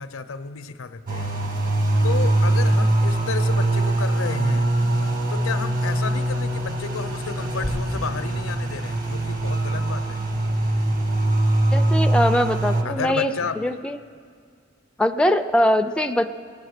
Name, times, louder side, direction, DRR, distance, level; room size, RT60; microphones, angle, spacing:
voice 1, 0.0-1.3 2.0-4.7 5.3-10.2 12.8-13.8, left 5 dB, 85° left, 11 dB, 0.6 m, -32 dB
sound 1, 1.1-12.8, right 1 dB, 45° right, 1.4 m, -22 dB
sound 2, 7.6-12.0, left 1 dB, 90° right, 4.4 m, -39 dB
voice 2, 11.7-13.3 13.6-14.0 15.0-16.3, left 1 dB, 5° left, 6 dB, 0.3 m, -21 dB
20.5 x 8.7 x 6.6 m, 2.1 s
head